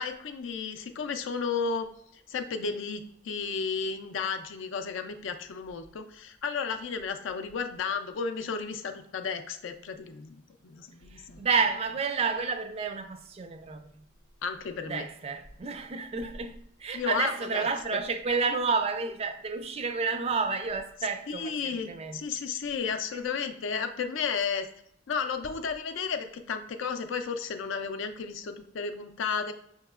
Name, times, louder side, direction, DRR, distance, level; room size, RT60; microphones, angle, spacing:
voice 1, 0.0-1.9 2.3-11.4 14.4-15.1 16.9-17.7 21.3-24.7 25.1-29.5, left 5 dB, 70° left, 0.4 m, -33 dB
voice 2, 11.1-14.0 14.9-22.2, right 5 dB, 30° right, 0.3 m, -30 dB
5.5 x 2.9 x 2.3 m
head